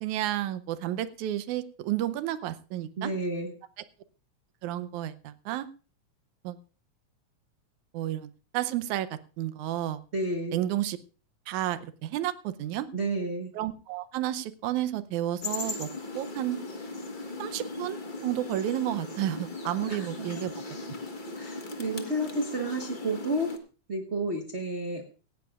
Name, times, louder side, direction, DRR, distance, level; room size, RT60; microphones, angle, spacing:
voice 1, 0.0-3.1 4.6-5.7 6.4-6.6 7.9-10.0 10.5-11.0 11.5-12.9 13.5-15.9 16.2-16.6 17.4-20.5, right 13 dB, 85° right, 13 dB, 2.2 m, -31 dB
voice 2, 3.0-3.5 10.1-10.6 12.9-13.5 19.9-20.3 21.3-23.5 23.9-25.0, right 1 dB, 45° right, 1 dB, 0.8 m, -31 dB
sound 1, 15.4-23.6, left 2 dB, 90° left, 0.4 m, -38 dB
17.5 x 15.5 x 2.4 m, 0.36 s
omnidirectional pair, 3.4 m